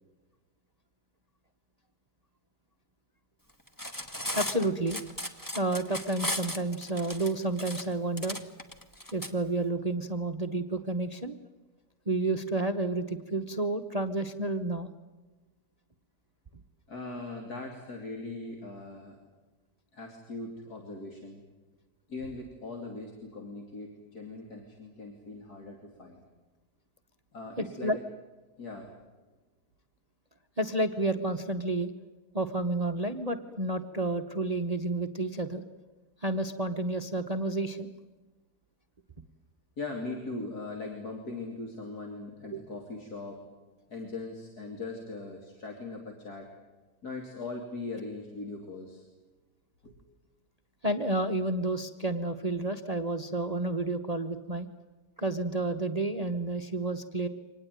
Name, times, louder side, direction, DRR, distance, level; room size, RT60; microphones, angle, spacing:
Cutlery silverware, 3.7-9.3, left 1 dB, 10° left, 1.6 m, -36 dB
voice 1, 4.3-5.0 5.5-8.4 9.1-11.4 12.1-14.9 27.6-28.0 30.6-31.9 32.3-35.6 36.2-37.9 42.5-42.6 50.8-54.7 55.2-57.3, right 2 dB, 30° right, 8 dB, 1.0 m, -30 dB
voice 2, 16.9-19.2 19.9-21.4 22.1-26.2 27.3-27.9 28.6-28.9 39.8-43.4 43.9-46.5 47.0-49.1 49.8-49.9, left 3 dB, 65° left, 1 dB, 3.5 m, -40 dB
25.5 x 19.5 x 9.3 m, 1.2 s
omnidirectional pair, 1.8 m